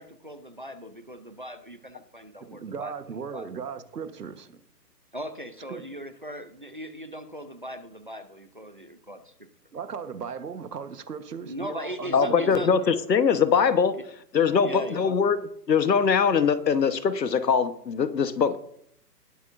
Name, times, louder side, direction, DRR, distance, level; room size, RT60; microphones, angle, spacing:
voice 1, 0.0-2.9 3.3-3.5 5.1-9.3 11.4-12.9 13.9-14.0 14.6-15.2, equal, 30° right, 0.6 m, -39 dB
voice 2, 2.4-4.5 5.7-5.8 9.7-12.6, right 6 dB, 70° right, 1.4 m, -37 dB
voice 3, 12.1-14.0 14.3-15.4 15.7-18.6, left 6 dB, 80° left, 1.2 m, -22 dB
20.0 x 8.2 x 2.6 m
hypercardioid pair, 175°, 49 cm